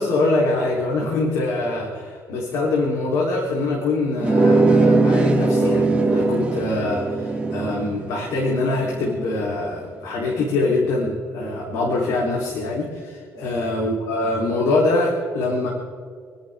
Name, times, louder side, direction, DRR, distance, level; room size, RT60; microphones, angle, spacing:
voice 1, 0.0-15.7, left 2 dB, 85° left, -3 dB, 3.7 m, -24 dB
sound 1, 4.2-9.5, right 3 dB, 15° right, 1.9 m, -20 dB
29.0 x 11.0 x 3.7 m, 2.2 s
cardioid pair, 135°, 6 cm